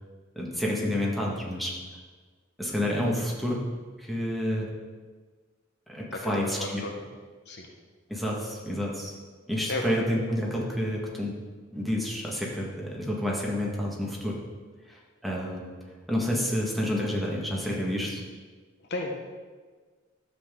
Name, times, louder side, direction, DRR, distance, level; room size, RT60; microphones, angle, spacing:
voice 1, 0.4-1.8 2.6-3.6 4.0-4.7 5.9-6.6 8.1-9.1 9.5-11.3 11.7-14.4 14.9-15.6 16.1-18.2, left 1 dB, ahead, -4 dB, 1.7 m, -29 dB
voice 2, 6.1-6.9 7.4-7.7 9.7-9.8 18.9-19.1, left 2 dB, 55° left, 2 dB, 1.2 m, -33 dB
12.5 x 8.0 x 3.8 m, 1.4 s
head